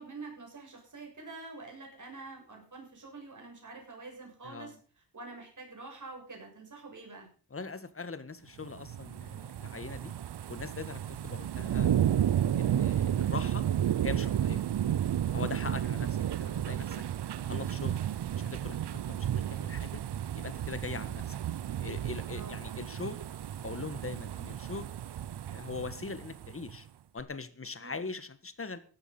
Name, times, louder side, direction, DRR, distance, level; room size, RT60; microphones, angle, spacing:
voice 1, 0.0-4.8 5.1-7.3 15.6-15.9 22.2-22.6 27.8-28.0, right 3 dB, 45° right, 1 dB, 7.3 m, -46 dB
voice 2, 4.4-4.8 7.5-10.1 10.5-12.0 12.5-13.6 14.0-14.6 15.3-16.1 16.4-17.0 17.4-18.0 18.4-20.0 20.3-21.4 21.8-23.2 23.5-24.9 25.5-26.9 27.1-28.8, left 4 dB, 30° left, 13 dB, 1.5 m, -41 dB
sound 1, 8.6-26.8 27.2-27.3, right 10 dB, 75° right, 0.7 m, -32 dB
15.0 x 12.5 x 5.4 m, 0.39 s
wide cardioid pair, 150°, 41 cm